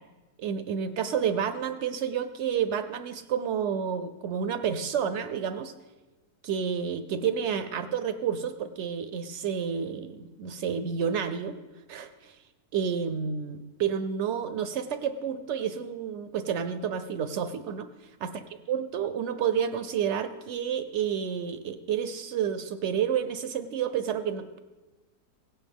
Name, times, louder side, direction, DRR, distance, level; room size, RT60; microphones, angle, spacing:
voice 1, 0.4-5.7 6.4-11.6 11.9-12.3 12.7-17.9 18.2-18.3 18.7-24.6, right 7 dB, 70° right, 10 dB, 0.6 m, -30 dB
17.0 x 9.0 x 3.5 m, 1.2 s
omnidirectional pair, 1.7 m